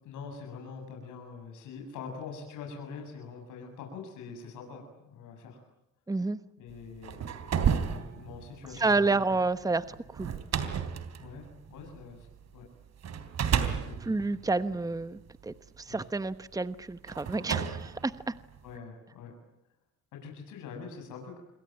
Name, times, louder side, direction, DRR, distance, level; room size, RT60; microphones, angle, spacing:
voice 1, 0.0-5.6 6.6-7.3 7.8-9.4 10.3-10.5 11.2-12.3 12.5-12.7 13.6-14.3 15.9-16.1 18.6-19.3 20.1-21.4, left 5 dB, 90° left, 2 dB, 7.4 m, -44 dB
voice 2, 6.1-6.4 8.8-10.3 14.1-18.3, right 3 dB, 10° right, 13 dB, 1.1 m, -29 dB
sound 1, 6.8-12.4 13.0-15.5 16.3-16.4 17.1-18.8, right 7 dB, 60° right, 3.5 m, -32 dB
28.0 x 23.0 x 9.2 m, 0.79 s
cardioid pair, 90°, 30 cm